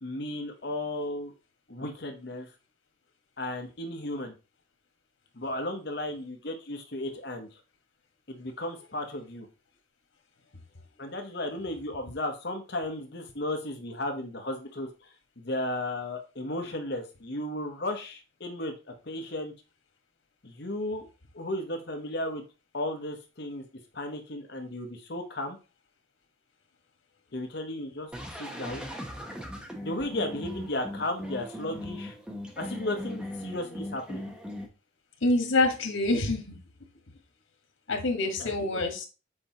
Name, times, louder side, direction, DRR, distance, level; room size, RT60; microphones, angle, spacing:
voice 1, 0.0-1.3 1.7-2.5 3.4-4.3 5.3-7.6 8.3-9.5 11.0-19.5 20.4-21.1 21.3-22.4 22.7-23.6 23.9-25.6 27.3-28.1 28.4-28.9 29.8-32.1 32.6-34.2 38.4-38.8, left 1 dB, 55° left, 4 dB, 1.0 m, -34 dB
sound 1, 28.1-34.7, left 1 dB, 5° right, 0.9 m, -39 dB
voice 2, 35.2-36.6 37.9-39.1, left 2 dB, 90° left, 4 dB, 1.5 m, -26 dB
7.8 x 4.4 x 2.9 m, 0.31 s
head